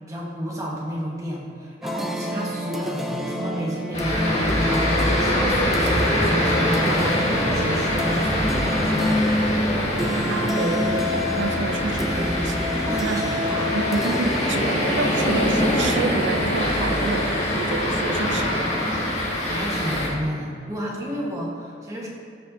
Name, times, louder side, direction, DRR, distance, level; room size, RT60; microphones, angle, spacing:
voice 1, 0.1-9.3 12.9-13.8 19.5-22.1, equal, 20° right, -4 dB, 1.3 m, -31 dB
sound 1, 1.8-18.4, left 1 dB, ahead, 0.4 m, -30 dB
sound 2, 3.9-20.1, left 1 dB, 40° left, 1.6 m, -23 dB
voice 2, 10.3-12.6 13.0-13.3 13.7-18.7, right 4 dB, 80° right, 8 dB, 0.5 m, -29 dB
12.5 x 5.3 x 2.7 m, 2.3 s
head